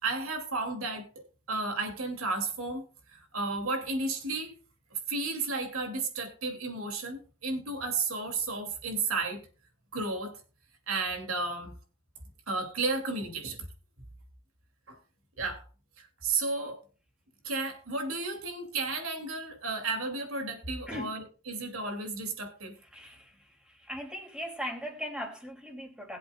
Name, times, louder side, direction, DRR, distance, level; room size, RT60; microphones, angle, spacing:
voice 1, 0.0-4.5 4.9-9.5 9.9-10.4 10.9-11.7 12.5-13.7 14.9-15.0 15.4-15.6 16.0-16.8 17.4-22.7, right 3 dB, 75° right, 4 dB, 2.8 m, -33 dB
voice 2, 22.9-23.3 23.8-26.2, equal, 5° right, 1 dB, 2.9 m, -38 dB
21.0 x 7.8 x 2.4 m, 0.36 s
head